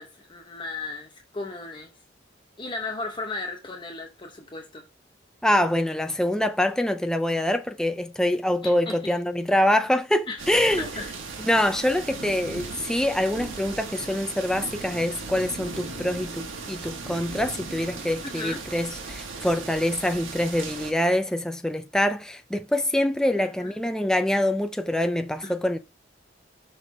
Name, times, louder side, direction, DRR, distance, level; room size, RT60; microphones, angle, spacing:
voice 1, 0.0-1.9 2.6-4.9 8.6-9.1 10.3-10.4 10.8-11.1 18.2-18.6 23.4-23.7 25.4-25.5, left 3 dB, 25° left, 0.8 m, -35 dB
voice 2, 5.4-10.9 11.5-25.8, left 1 dB, 5° left, 0.3 m, -25 dB
sound 1, 10.4-20.9, right 3 dB, 85° right, 1.3 m, -37 dB
5.9 x 4.0 x 4.7 m
head